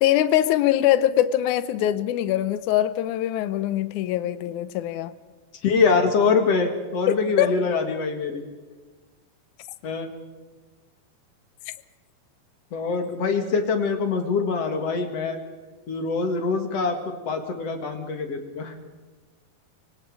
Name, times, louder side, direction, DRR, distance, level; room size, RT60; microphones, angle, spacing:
voice 1, 0.0-5.1 7.1-7.5, left 12 dB, 70° left, 14 dB, 2.0 m, -22 dB
voice 2, 5.6-8.4 9.8-10.1 12.7-15.4 15.9-18.8, left 4 dB, 50° left, 5 dB, 2.6 m, -24 dB
25.0 x 24.5 x 4.9 m, 1.3 s
omnidirectional pair, 4.2 m